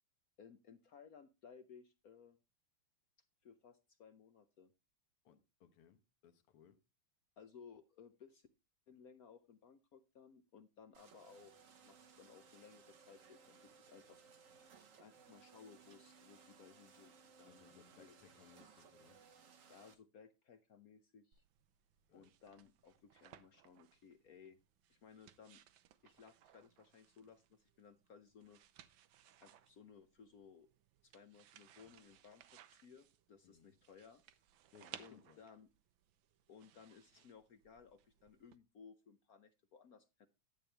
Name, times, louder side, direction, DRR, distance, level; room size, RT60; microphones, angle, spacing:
voice 1, 0.4-2.4 3.4-4.7 7.4-8.5 8.9-11.5 11.8-14.2 14.5-14.6 15.0-17.1 17.4-18.2 19.7-21.4 22.1-24.6 24.9-25.6 26.0-28.6 29.4-30.7 31.0-34.2 35.0-35.7 36.5-40.3, left 6 dB, 65° left, 0.9 m, -60 dB
voice 2, 5.3-6.8 17.5-19.2 22.1-22.3 33.4-33.7 34.7-35.4, left 8 dB, 90° left, 2.0 m, -65 dB
sound 1, 10.9-19.9, right 5 dB, 50° right, 1.1 m, -63 dB
sound 2, 21.3-38.6, right 11 dB, 70° right, 1.4 m, -62 dB
11.0 x 8.5 x 3.3 m
omnidirectional pair, 2.4 m